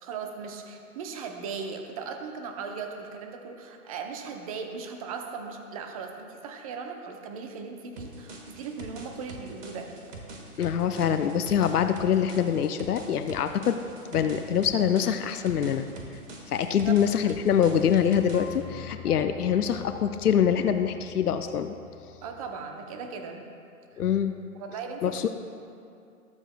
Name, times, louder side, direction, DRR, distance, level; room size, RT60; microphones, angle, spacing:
voice 1, 0.0-9.9 16.8-17.0 22.2-23.5 23.9-24.0 24.6-25.3, right 5 dB, 25° right, 5 dB, 0.7 m, -38 dB
sound 1, 8.0-18.6, right 2 dB, 55° right, 1.7 m, -44 dB
voice 2, 10.6-13.8 14.1-15.8 16.5-21.7 24.0-24.3 25.0-25.3, left 8 dB, 80° left, 8 dB, 0.6 m, -24 dB
sound 2, 18.3-22.5, left 7 dB, 55° left, 1.0 m, -44 dB
20.0 x 7.1 x 2.2 m, 2.4 s
figure-of-eight pair, 125°, 45 cm